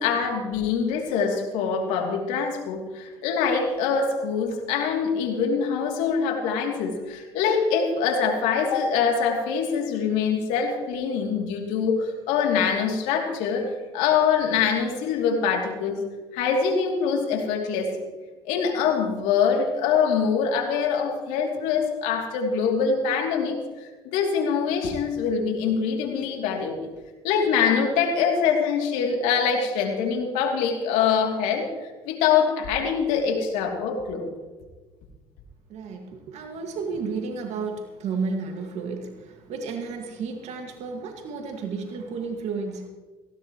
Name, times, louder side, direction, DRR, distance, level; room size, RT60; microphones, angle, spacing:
voice 1, 0.0-16.0 16.3-18.0 18.5-26.7 27.2-34.3, left 6 dB, 80° left, 2 dB, 3.0 m, -24 dB
voice 2, 35.7-42.9, right 4 dB, 65° right, 3 dB, 2.1 m, -32 dB
18.5 x 17.0 x 3.1 m, 1.3 s
supercardioid pair, 80°, 13 cm